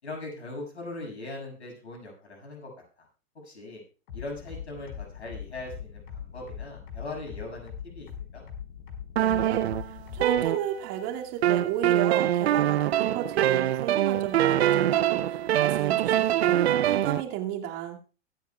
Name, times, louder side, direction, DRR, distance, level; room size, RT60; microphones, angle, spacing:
voice 1, 0.0-2.7 3.4-3.8 4.1-8.1 8.3-8.5, left 2 dB, 85° left, -1 dB, 6.8 m, -40 dB
sound 1, 4.1-10.4, left 8 dB, 60° left, 5.1 m, -40 dB
voice 2, 9.2-18.0, right 11 dB, 45° right, 1 dB, 2.4 m, -33 dB
sound 2, 9.2-11.0 11.4-17.2, right 12 dB, 70° right, 0.7 m, -24 dB
23.5 x 9.1 x 2.4 m, 0.37 s
hypercardioid pair, 105°, 33 cm